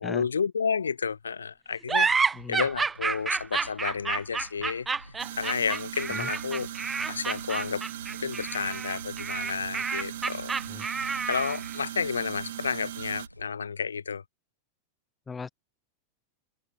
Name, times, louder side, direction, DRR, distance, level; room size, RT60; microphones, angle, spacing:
voice 1, 0.0-6.7 7.1-7.8 8.2-10.5 11.3-14.2, left 6 dB, 70° left, 0.4 m, -31 dB
sound 1, 1.9-11.7, right 5 dB, 15° right, 1.6 m, -29 dB
sound 2, 2.1-13.4, equal, 90° left, 4.9 m, -50 dB
voice 2, 2.3-2.6 6.1-6.3 10.7-10.8 15.3-15.5, left 5 dB, 15° left, 3.0 m, -37 dB
sound 3, 5.2-13.3, right 13 dB, 55° right, 1.6 m, -39 dB
figure-of-eight pair, 90°, 0 cm